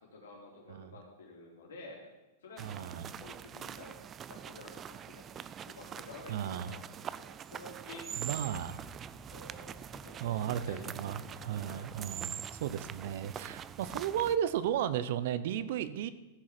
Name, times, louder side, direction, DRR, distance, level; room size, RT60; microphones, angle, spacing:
voice 1, 0.1-2.0 2.4-2.9 3.2-4.0 4.3-8.7 9.1-11.4 11.7-11.9, left 2 dB, 80° left, -1 dB, 3.6 m, -51 dB
sound 1, 2.6-14.4, right 9 dB, 25° right, 0.4 m, -44 dB
voice 2, 2.6-3.1 6.3-6.7 8.2-8.8 10.2-16.1, right 10 dB, 65° right, 14 dB, 0.7 m, -34 dB
sound 2, 8.8-14.8, right 1 dB, ahead, 0.8 m, -54 dB
14.5 x 6.2 x 5.9 m, 1.0 s
hypercardioid pair, 135°, 0 cm